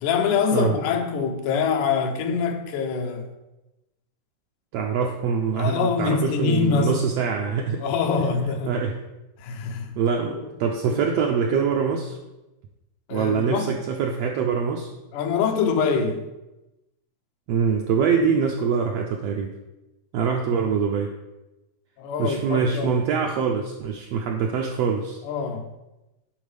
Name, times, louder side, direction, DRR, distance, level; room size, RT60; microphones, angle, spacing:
voice 1, 0.0-3.3 5.6-7.0 7.8-8.8 9.4-10.0 10.3-10.5 10.9-11.0 13.1-13.8 15.1-16.3 22.0-22.9 25.2-25.7, left 5 dB, 85° left, 2.1 m, -24 dB
voice 2, 4.7-7.8 8.7-9.0 10.0-12.2 13.1-14.9 17.5-19.5 20.1-21.1 22.2-25.2, right 6 dB, 90° right, 1.4 m, -24 dB
10.5 x 4.0 x 3.3 m
omnidirectional pair, 3.5 m